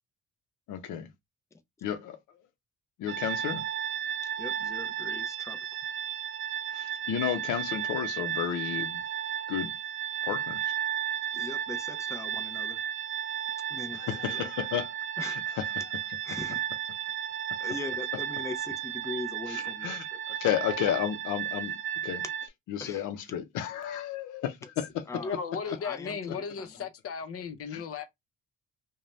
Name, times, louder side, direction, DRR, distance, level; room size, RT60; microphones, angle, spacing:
voice 1, 0.7-1.1 1.8-2.4 3.0-3.6 6.7-9.0 9.5-9.7 10.2-10.7 13.9-14.9 15.2-15.6 19.5-21.7 22.0-22.2 22.7-25.2 27.7-27.8, left 10 dB, 85° left, 0.6 m, -32 dB
sound 1, 3.1-22.5, right 10 dB, 45° right, 0.5 m, -34 dB
voice 2, 4.4-5.6 11.3-12.8 13.7-14.5 15.2-15.4 16.2-16.6 17.6-20.2 22.8-23.1 25.1-25.4 25.6-26.9, left 3 dB, 10° left, 0.5 m, -41 dB
voice 3, 25.2-28.0, left 6 dB, 50° left, 0.7 m, -36 dB
2.5 x 2.2 x 3.1 m
cardioid pair, 90°, 30 cm